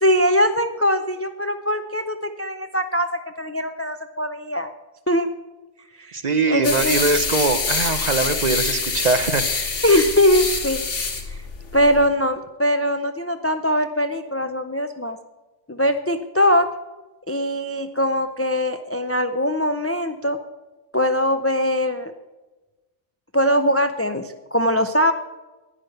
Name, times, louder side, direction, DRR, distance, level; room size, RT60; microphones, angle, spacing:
voice 1, 0.0-4.7 5.1-5.3 6.0-6.2 6.5-7.0 9.8-10.8 11.3-11.4 11.7-15.2 15.7-16.7 17.3-20.4 20.9-22.1 23.3-25.1, equal, 20° left, 8 dB, 0.3 m, -21 dB
voice 2, 6.1-9.4, right 3 dB, 40° right, 10 dB, 0.8 m, -22 dB
sound 1, 6.6-12.1, left 4 dB, 80° left, 1.9 m, -25 dB
11.5 x 9.9 x 7.9 m, 1.1 s
omnidirectional pair, 1.2 m